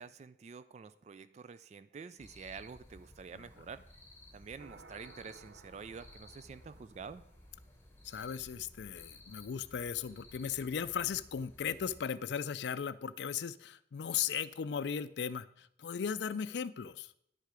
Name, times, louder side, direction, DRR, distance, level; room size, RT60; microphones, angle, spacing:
voice 1, 0.0-3.8 4.3-7.2, right 5 dB, 40° right, 14 dB, 0.3 m, -48 dB
sound 1, 2.2-12.0, left 1 dB, 15° left, 1.2 m, -57 dB
sound 2, 4.6-8.0, right 4 dB, 90° right, 0.8 m, -59 dB
voice 2, 8.0-17.1, left 7 dB, 70° left, 16 dB, 0.4 m, -37 dB
10.5 x 6.6 x 4.8 m, 0.72 s
head